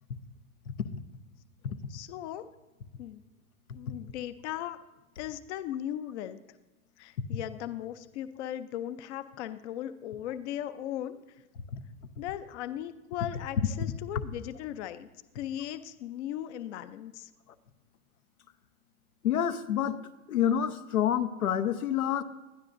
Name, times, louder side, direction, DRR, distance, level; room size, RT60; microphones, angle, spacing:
voice 1, 1.9-2.5 3.0-3.2 3.7-4.8 5.2-6.4 7.0-11.2 12.2-15.1 15.3-17.3, left 11 dB, 55° left, 11 dB, 0.7 m, -37 dB
voice 2, 19.2-20.0 20.3-22.2, left 9 dB, 85° left, 10 dB, 1.0 m, -28 dB
20.0 x 12.0 x 2.6 m, 1.1 s
hypercardioid pair, 130°, 42 cm